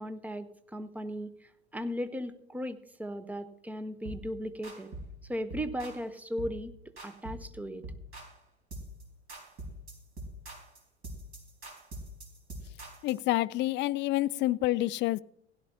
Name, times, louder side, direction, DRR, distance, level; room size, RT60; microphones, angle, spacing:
voice 1, 0.0-4.9 5.3-6.7 7.0-7.8, equal, 5° right, 0.9 m, -37 dB
sound 1, 4.0-4.3 4.6-5.1 5.5-6.0 6.4-6.6 7.0-7.5 7.8-8.4 8.7-9.0 9.3-13.2, right 1 dB, 40° right, 4.1 m, -43 dB
voice 2, 13.0-15.2, left 16 dB, 35° left, 0.4 m, -28 dB
16.5 x 11.0 x 2.8 m
hypercardioid pair, 75°, 34 cm